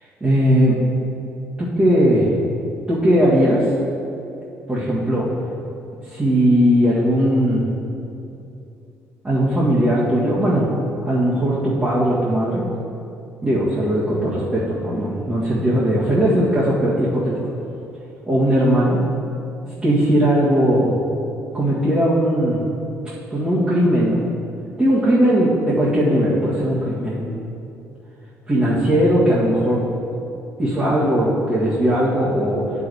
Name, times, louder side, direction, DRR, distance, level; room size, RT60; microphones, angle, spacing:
voice 1, 0.2-0.8 1.6-2.3 2.9-3.7 4.7-5.3 6.1-7.7 9.2-10.7 11.0-12.6 13.4-17.3 18.3-19.0 19.8-20.9 21.5-22.6 23.3-24.3 24.8-27.4 28.5-29.9 30.6-32.6, equal, 20° right, -9 dB, 1.9 m, -18 dB
9.7 x 5.0 x 4.8 m, 2.8 s
cardioid pair, 90°, 6 cm